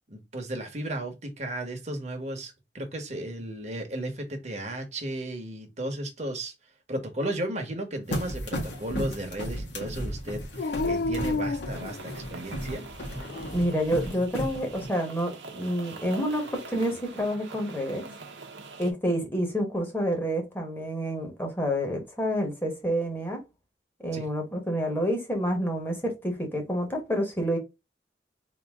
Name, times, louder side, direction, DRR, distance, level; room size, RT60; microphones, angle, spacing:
voice 1, 0.1-6.5 6.9-12.8 24.1-24.3, right 1 dB, 40° right, 1.1 m, -34 dB
sound 1, 8.1-14.9, equal, 85° left, 1.8 m, -35 dB
Dog, 10.6-12.5 13.1-13.9 16.2-17.0, left 3 dB, 55° left, 0.3 m, -32 dB
sound 2, 11.7-18.9, right 3 dB, 75° right, 0.9 m, -44 dB
voice 2, 13.5-18.0 18.8-23.4 24.0-27.6, equal, 10° left, 1.2 m, -28 dB
4.1 x 2.8 x 3.5 m
head